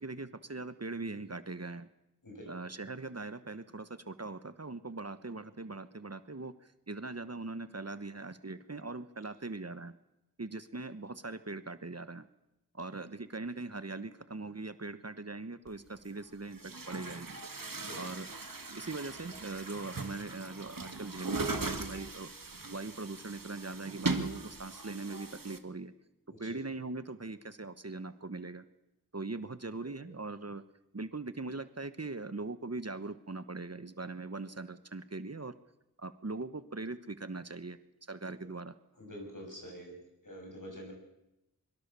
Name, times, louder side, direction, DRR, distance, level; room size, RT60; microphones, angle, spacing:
voice 1, 0.0-1.9 2.5-9.9 10.4-12.3 12.7-17.3 18.0-18.3 18.7-22.3 22.7-25.9 26.4-28.6 29.1-30.6 30.9-35.5 36.0-37.8 38.1-38.7, right 3 dB, 45° right, 12 dB, 1.2 m, -41 dB
Chatter / Gurgling / Tap, 15.7-15.8 16.5-25.6, right 3 dB, 65° right, 1.9 m, -39 dB
voice 2, 29.8-30.1 39.0-39.9 40.2-40.9, equal, 60° left, 1 dB, 7.5 m, -46 dB
23.5 x 22.5 x 7.0 m, 0.91 s
wide cardioid pair, 45°, 35 cm